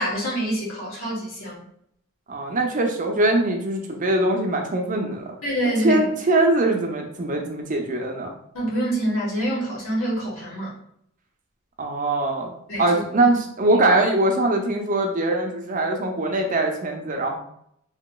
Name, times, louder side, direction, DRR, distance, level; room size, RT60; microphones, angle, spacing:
voice 1, 0.0-1.6 5.4-6.0 8.5-10.7 12.7-13.3 13.7-13.8, right 1 dB, 85° left, -4 dB, 1.3 m, -26 dB
voice 2, 2.3-5.3 5.8-8.3 11.8-12.5 12.8-17.4, right 2 dB, 40° right, 2 dB, 0.5 m, -22 dB
3.5 x 2.9 x 2.2 m, 0.72 s
head